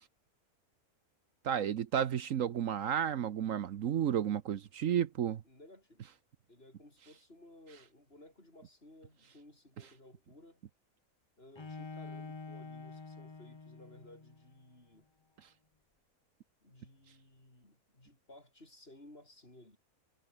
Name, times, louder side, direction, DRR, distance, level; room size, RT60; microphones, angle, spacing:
voice 1, 1.4-5.4, right 9 dB, 65° right, 1.2 m, -32 dB
voice 2, 5.4-6.1 6.5-10.6 11.4-15.1 16.6-19.8, left 1 dB, 40° left, 6.9 m, -58 dB
Bowed string instrument, 11.5-14.5, left 4 dB, 25° left, 0.8 m, -47 dB
omnidirectional pair, 1.5 m